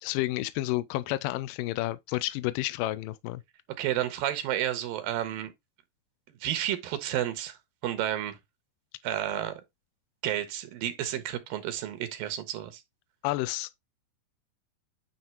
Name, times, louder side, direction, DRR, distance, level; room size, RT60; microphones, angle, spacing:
voice 1, 0.0-3.4 13.2-13.8, left 17 dB, 80° left, 2.2 m, -30 dB
voice 2, 3.8-5.5 6.4-8.4 9.0-9.6 10.2-12.8, right 12 dB, 90° right, 2.8 m, -31 dB
9.4 x 3.3 x 4.4 m
omnidirectional pair, 4.0 m